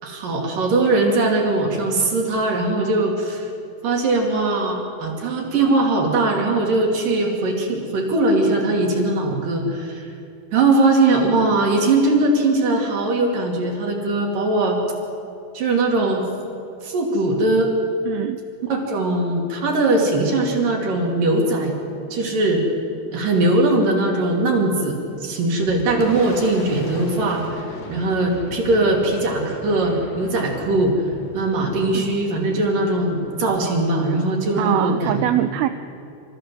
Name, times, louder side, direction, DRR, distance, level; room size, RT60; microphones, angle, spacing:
voice 1, 0.0-3.5 3.8-10.1 10.5-14.8 15.5-16.2 16.8-17.7 18.6-21.7 22.1-22.6 23.1-30.9 31.3-35.2, right 2 dB, 50° right, 1 dB, 4.2 m, -20 dB
voice 2, 18.1-18.4 31.9-32.0 34.6-35.7, right 13 dB, 90° right, 10 dB, 2.2 m, -22 dB
Boom, 25.1-34.5, left 2 dB, 65° left, 0.7 m, -38 dB
29.5 x 14.5 x 7.7 m, 2.6 s
omnidirectional pair, 5.2 m